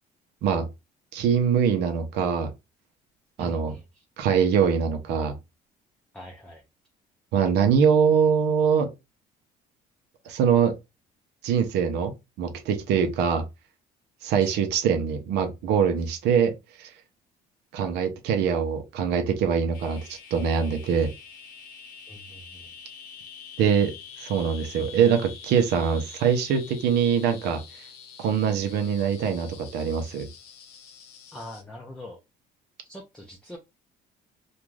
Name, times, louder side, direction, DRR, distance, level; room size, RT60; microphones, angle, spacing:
voice 1, 1.1-2.5 3.4-3.7 4.2-5.3 7.3-8.9 10.2-10.7 11.4-13.4 14.2-16.5 16.8-16.9 17.7-21.1 23.6-27.6 28.2-30.3, right 7 dB, 80° right, 0.6 m, -23 dB
voice 2, 3.4-4.0 6.1-6.6 14.4-14.6 22.1-22.7 31.3-32.2 32.9-33.6, left 1 dB, 5° left, 0.5 m, -43 dB
sound 1, 19.7-31.6, left 7 dB, 70° left, 0.9 m, -46 dB
2.5 x 2.3 x 3.1 m
cardioid pair, 110°, 17 cm